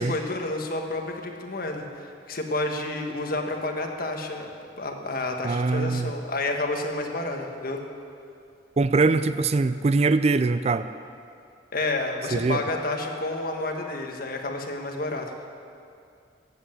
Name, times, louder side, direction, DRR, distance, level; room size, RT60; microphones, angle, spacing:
voice 1, 0.0-4.5 4.8-7.8 11.7-15.5, left 2 dB, 55° left, 2 dB, 1.5 m, -30 dB
voice 2, 5.4-6.1 8.8-10.9 12.3-12.6, right 3 dB, 35° right, 13 dB, 0.4 m, -22 dB
15.0 x 8.1 x 9.1 m, 2.5 s
head